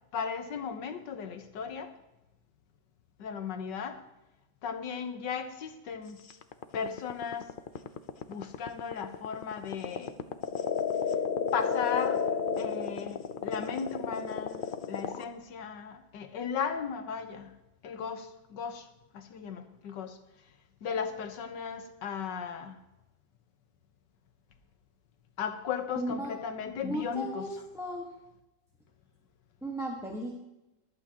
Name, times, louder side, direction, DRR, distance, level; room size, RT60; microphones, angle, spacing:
voice 1, 0.1-1.9 3.2-4.0 4.6-6.2 6.7-7.5 8.3-10.2 11.5-12.2 12.6-17.5 17.8-18.9 19.1-20.2 20.8-22.8 25.4-27.4, left 6 dB, 85° left, 8 dB, 1.7 m, -36 dB
sound 1, 6.3-15.2, left 6 dB, 60° left, 0.5 m, -31 dB
voice 2, 25.9-26.3 26.8-28.1 29.6-30.4, right 1 dB, ahead, -3 dB, 1.2 m, -35 dB
23.5 x 8.8 x 2.9 m, 0.97 s
omnidirectional pair, 1.9 m